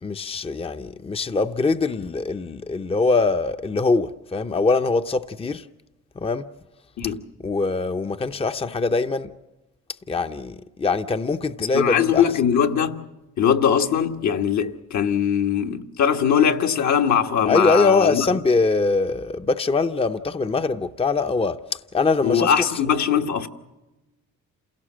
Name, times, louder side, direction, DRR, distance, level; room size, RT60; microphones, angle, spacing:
voice 1, 0.0-5.6 6.2-6.5 7.4-9.3 10.1-12.2 17.5-22.6, left 3 dB, 20° left, 0.7 m, -23 dB
voice 2, 11.7-13.0 13.4-18.3 22.2-23.5, left 8 dB, 70° left, 1.4 m, -21 dB
27.5 x 17.0 x 7.4 m
cardioid pair, 90°, 30 cm